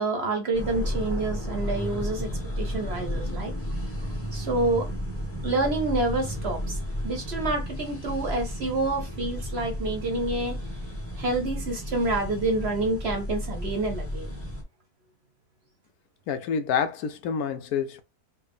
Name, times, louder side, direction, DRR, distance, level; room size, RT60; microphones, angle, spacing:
voice 1, 0.0-2.3 2.6-3.5 4.3-4.9 5.4-6.8 7.0-10.6 11.2-14.4, right 2 dB, 50° right, 0.9 m, -28 dB
sound 1, 0.5-14.6, equal, 10° left, 1.0 m, -33 dB
voice 2, 16.3-18.0, left 7 dB, 75° left, 1.1 m, -28 dB
4.5 x 2.1 x 3.5 m
omnidirectional pair, 1.6 m